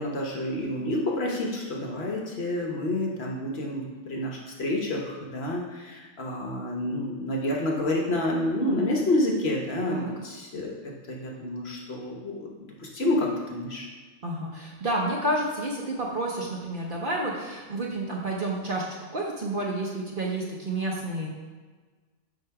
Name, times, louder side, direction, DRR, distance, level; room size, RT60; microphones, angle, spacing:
voice 1, 0.0-10.7 11.1-13.9, left 1 dB, 55° left, -1 dB, 1.2 m, -29 dB
voice 2, 14.2-18.9 19.1-21.3, right 1 dB, 45° right, -2 dB, 0.9 m, -30 dB
7.7 x 2.9 x 5.7 m, 1.4 s
omnidirectional pair, 1.4 m